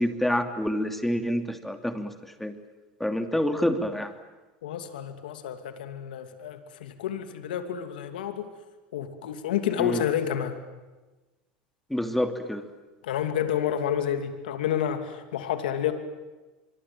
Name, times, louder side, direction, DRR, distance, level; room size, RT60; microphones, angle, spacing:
voice 1, 0.0-2.1 2.4-2.5 3.0-4.1 9.8-10.0 11.9-12.7, equal, 5° left, 7 dB, 2.8 m, -27 dB
voice 2, 4.6-8.5 8.9-10.6 13.0-15.9, left 9 dB, 85° left, 8 dB, 2.7 m, -29 dB
24.5 x 24.0 x 9.2 m, 1.2 s
hypercardioid pair, 100°, 5 cm